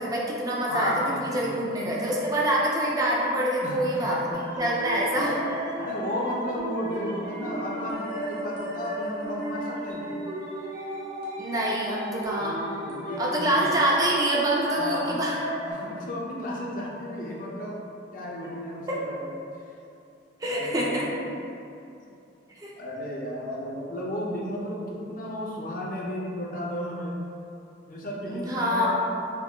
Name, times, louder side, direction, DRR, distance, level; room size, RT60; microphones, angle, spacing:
voice 1, 0.0-0.9 1.2-5.4 11.4-12.6 13.2-15.4 18.9-19.0 20.4-21.1 22.6-22.7 28.3-28.9, right 1 dB, 20° right, -4 dB, 0.4 m, -26 dB
voice 2, 0.6-1.8 3.6-4.2 5.1-10.2 12.3-13.8 14.8-15.3 15.6-17.8 18.1-19.3 20.5-21.2 22.8-27.2 27.9-28.9, left 1 dB, 45° left, -3 dB, 0.5 m, -33 dB
sound 1, 4.3-15.7, right 1 dB, 50° right, 0.8 m, -35 dB
3.6 x 3.4 x 2.2 m, 2.7 s
head